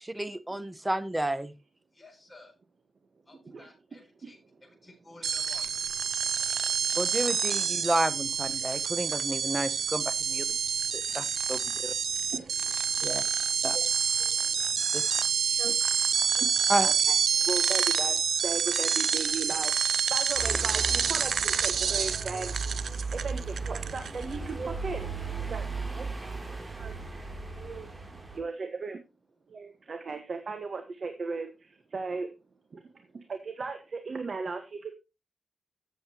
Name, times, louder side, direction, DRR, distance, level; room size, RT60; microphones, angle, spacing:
voice 1, 0.1-1.5 7.0-10.4 11.1-11.9 13.0-13.2 13.6-13.8 14.9-15.0 16.7-16.9, right 1 dB, 15° right, 14 dB, 1.2 m, -31 dB
voice 2, 1.9-2.5 3.3-5.8 6.4-6.8, left 2 dB, 15° left, -1 dB, 7.0 m, -54 dB
sound 1, 5.2-24.4, right 7 dB, 75° right, 0.5 m, -28 dB
voice 3, 12.3-13.4 13.7-13.9 14.2-15.2 15.5-17.2 17.5-22.5 23.1-25.6 25.9-26.1 26.8-27.2 27.5-27.9 28.3-29.0 29.5-32.3 32.7-34.9, right 4 dB, 60° right, 7 dB, 1.5 m, -37 dB
sound 2, 20.4-28.4, right 3 dB, 30° right, 3.1 m, -36 dB
13.5 x 8.0 x 3.0 m, 0.26 s
cardioid pair, 65°, 0 cm